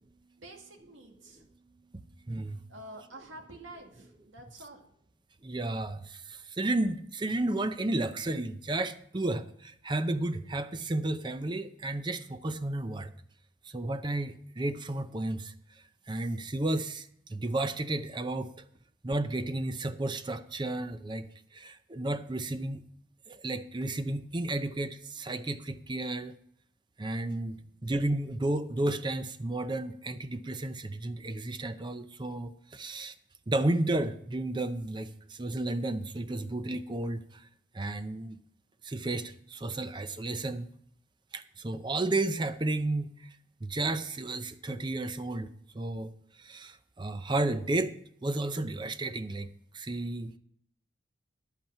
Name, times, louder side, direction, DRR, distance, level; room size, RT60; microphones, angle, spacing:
voice 1, 0.4-1.4 2.7-4.9 27.5-27.6, right 1 dB, 85° right, 2 dB, 2.0 m, -48 dB
voice 2, 1.9-2.6 5.4-13.1 13.7-15.5 16.1-18.6 19.0-21.3 21.5-22.8 23.3-26.3 27.0-33.1 33.5-37.4 37.7-38.4 38.8-40.7 41.3-43.4 43.6-45.5 45.7-46.1 46.4-49.5 49.7-50.4, right 2 dB, 25° right, 11 dB, 0.6 m, -32 dB
10.5 x 8.4 x 5.6 m, 0.67 s
head